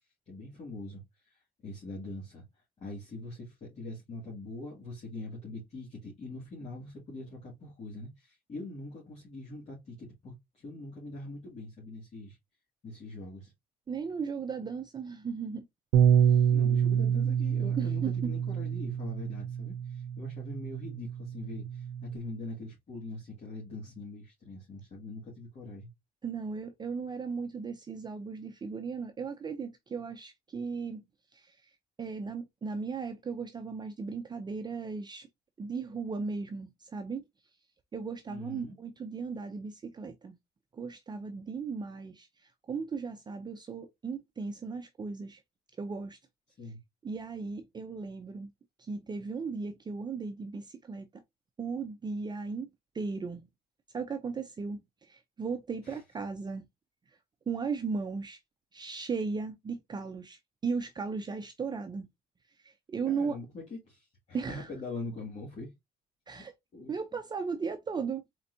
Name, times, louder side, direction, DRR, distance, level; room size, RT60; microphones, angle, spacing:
voice 1, 0.3-2.4 2.8-12.4 12.8-13.5 16.5-25.9 38.3-38.8 46.6-46.8 55.8-56.0 63.0-65.7 66.3-66.4 66.7-67.0, left 2 dB, 40° left, 2.3 m, -43 dB
voice 2, 13.9-15.6 16.2-16.3 17.8-18.1 26.2-31.0 31.3-31.6 32.0-35.3 35.6-37.2 37.9-40.4 40.7-45.4 45.8-46.2 47.0-48.5 48.8-51.2 51.6-52.7 52.9-53.5 53.9-56.6 57.5-58.4 58.7-62.1 62.6-63.4 64.3-64.7 66.3-66.5 66.9-68.2, right 5 dB, 25° right, 0.6 m, -36 dB
Bass guitar, 15.9-22.2, right 8 dB, 90° right, 0.5 m, -27 dB
4.4 x 3.9 x 2.7 m
cardioid pair, 110°, 17 cm